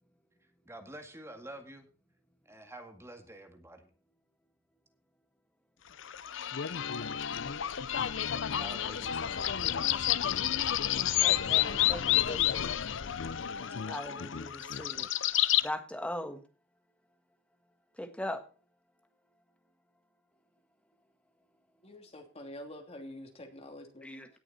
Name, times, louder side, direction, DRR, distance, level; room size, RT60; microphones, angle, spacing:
voice 1, 0.7-1.9 2.4-3.9 8.5-9.5, right 1 dB, 15° right, 5 dB, 2.0 m, -48 dB
sound 1, 6.0-15.7, left 11 dB, 65° left, 0.6 m, -30 dB
voice 2, 11.2-12.6 13.8-15.1 15.6-16.4 18.0-18.4 24.0-24.3, left 1 dB, 5° left, 6 dB, 1.5 m, -39 dB
voice 3, 21.8-24.0, left 1 dB, 30° left, 3 dB, 2.9 m, -46 dB
18.0 x 6.6 x 4.2 m, 0.37 s
head